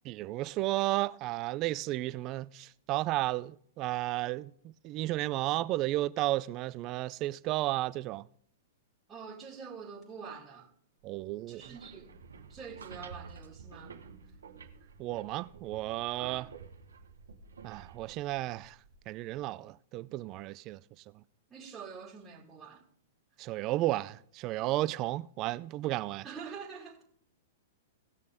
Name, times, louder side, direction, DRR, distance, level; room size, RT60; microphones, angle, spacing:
voice 1, 0.1-4.5 4.8-8.2 11.0-11.6 15.0-16.5 17.6-18.8 19.1-20.8 23.4-26.2, right 17 dB, 40° right, 0.4 m, -33 dB
voice 2, 9.1-10.7 11.5-12.2 12.5-14.0 14.8-14.9 16.2-16.5 21.5-22.8 26.2-27.0, right 6 dB, 20° right, 2.0 m, -46 dB
sound 1, 11.4-19.4, right 5 dB, 85° right, 1.2 m, -51 dB
17.5 x 6.5 x 3.5 m
hypercardioid pair, 120°, 0 cm